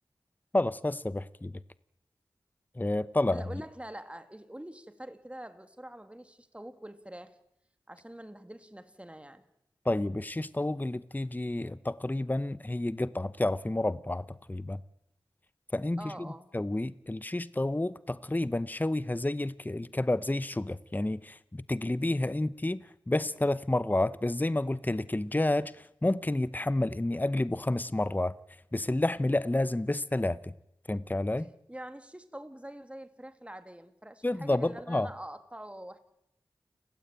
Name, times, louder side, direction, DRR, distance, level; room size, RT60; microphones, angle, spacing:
voice 1, 0.5-1.5 2.8-3.4 9.8-14.8 15.7-16.3 16.5-28.3 28.7-30.5 30.9-31.5 34.2-35.1, left 1 dB, 20° left, 16 dB, 0.8 m, -30 dB
voice 2, 3.3-7.4 7.9-9.4 16.0-16.5 31.7-36.0, right 1 dB, 15° right, 9 dB, 2.5 m, -45 dB
30.0 x 16.5 x 9.0 m, 0.82 s
wide cardioid pair, 55°, 9 cm